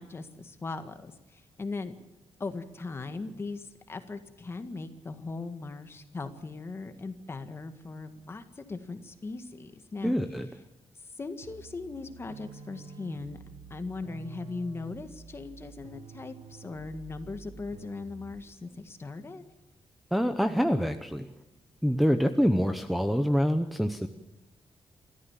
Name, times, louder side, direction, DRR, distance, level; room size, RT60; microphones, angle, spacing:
voice 1, 0.0-1.9 2.4-10.1 11.2-13.4 13.7-19.4, left 3 dB, 25° left, 8 dB, 1.8 m, -39 dB
voice 2, 10.0-10.5 20.1-21.3 21.8-24.1, equal, ahead, 6 dB, 0.9 m, -26 dB
sound 1, 11.4-18.6, right 6 dB, 70° right, 1.8 m, -48 dB
28.5 x 14.0 x 7.4 m, 1.0 s
wide cardioid pair, 170°, 10 cm